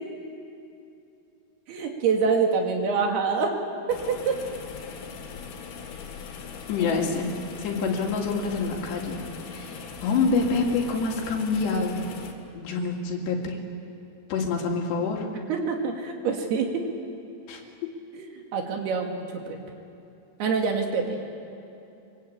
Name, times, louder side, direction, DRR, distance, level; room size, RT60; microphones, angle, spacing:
voice 1, 1.7-3.5 3.9-4.4 6.8-7.1 15.5-16.8 18.2-19.6 20.4-21.2, right 5 dB, 70° right, 2 dB, 4.1 m, -26 dB
sound 1, 3.9-12.3, left 5 dB, 70° left, 3.7 m, -40 dB
voice 2, 6.7-12.0 12.5-13.6 14.3-15.3 17.5-17.6 19.5-19.6, left 4 dB, 85° left, 1 dB, 4.6 m, -27 dB
23.0 x 23.0 x 8.7 m, 2.8 s
omnidirectional pair, 4.8 m